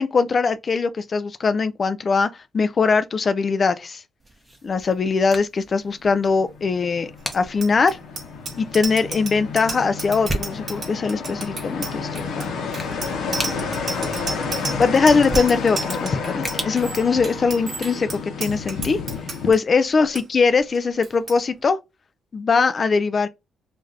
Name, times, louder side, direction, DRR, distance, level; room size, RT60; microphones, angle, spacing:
voice 1, 0.0-4.0 4.6-8.0 8.6-12.5 14.8-18.1 18.4-19.0 19.5-21.8 22.3-23.3, left 4 dB, 40° left, 0.3 m, -21 dB
sound 1, 4.2-17.9, right 1 dB, 10° right, 0.8 m, -37 dB
sound 2, 6.1-19.5, left 5 dB, 75° left, 0.8 m, -31 dB
Bicycle bell, 7.3-19.6 19.9-20.2 20.5-20.8 21.0-21.4, right 3 dB, 45° right, 1.2 m, -32 dB
2.5 x 2.4 x 3.2 m
cardioid pair, 90°, 0 cm